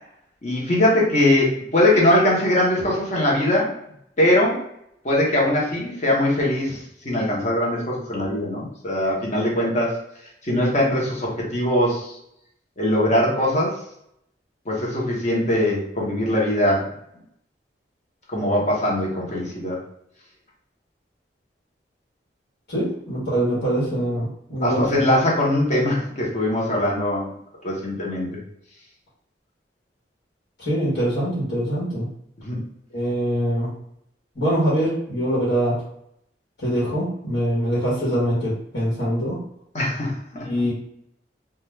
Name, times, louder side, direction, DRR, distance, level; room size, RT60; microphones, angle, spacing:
voice 1, 0.4-3.7 4.2-4.6 5.0-10.0 10.4-12.1 12.8-13.8 14.7-16.9 18.3-19.8 24.6-27.3 27.6-28.4 32.4-32.6 39.7-40.2, left 1 dB, 40° left, -4 dB, 0.9 m, -21 dB
voice 2, 22.7-25.0 30.6-32.1 32.9-33.7 34.3-35.8 36.6-39.4 40.3-40.7, equal, 80° left, -8 dB, 1.2 m, -23 dB
2.4 x 2.3 x 3.1 m, 0.73 s
head